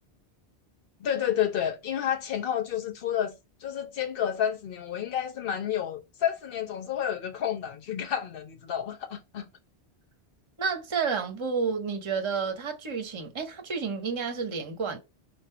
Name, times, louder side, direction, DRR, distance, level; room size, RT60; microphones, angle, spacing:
voice 1, 1.0-3.3 3.6-9.5, left 9 dB, 55° left, 1.1 m, -30 dB
voice 2, 10.6-15.0, right 5 dB, 30° right, 0.8 m, -30 dB
4.5 x 2.7 x 4.4 m
omnidirectional pair, 1.1 m